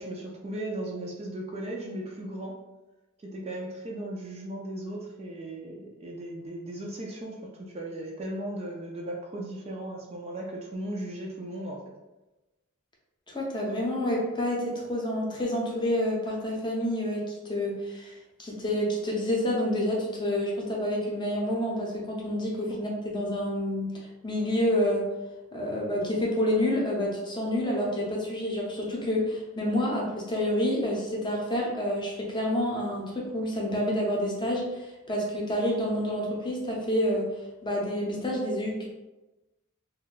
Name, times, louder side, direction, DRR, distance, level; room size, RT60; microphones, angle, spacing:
voice 1, 0.0-2.6 3.2-11.8 22.7-22.8, right 1 dB, 30° right, -2 dB, 0.4 m, -37 dB
voice 2, 13.3-23.9 24.2-25.1 25.5-37.3 37.6-38.9, left 1 dB, 20° left, -3 dB, 0.6 m, -28 dB
2.6 x 2.2 x 3.8 m, 1.1 s
head